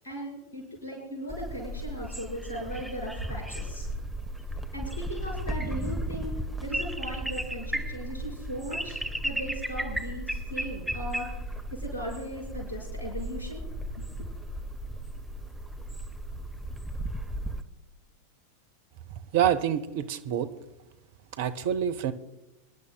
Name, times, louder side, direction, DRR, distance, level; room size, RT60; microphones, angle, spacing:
voice 1, 0.0-3.9 4.7-6.3 6.6-11.3 11.7-14.1, equal, 75° left, -2 dB, 5.1 m, -38 dB
sound 1, 1.3-17.6, right 1 dB, ahead, 0.8 m, -35 dB
voice 2, 19.3-20.5 21.4-22.1, right 10 dB, 50° right, 11 dB, 0.7 m, -26 dB
25.0 x 11.0 x 2.3 m, 0.97 s
figure-of-eight pair, 90°, 0 cm